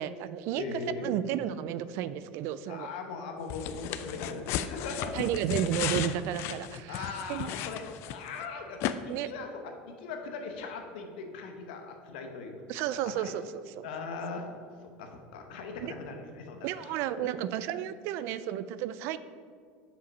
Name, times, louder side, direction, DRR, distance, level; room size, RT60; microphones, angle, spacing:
voice 1, 0.0-2.9 5.1-7.5 9.1-9.3 12.7-13.9 15.8-15.9 16.6-19.2, right 11 dB, 65° right, 14 dB, 0.3 m, -33 dB
voice 2, 0.6-1.1 2.7-5.5 6.9-12.6 13.0-13.3 13.8-14.5 14.8-17.0, left 4 dB, 85° left, 4 dB, 1.0 m, -40 dB
sound 1, 3.5-8.4 8.8-8.9, left 10 dB, 60° left, 0.4 m, -35 dB
5.6 x 5.0 x 5.4 m, 2.1 s
supercardioid pair, 110°, 5 cm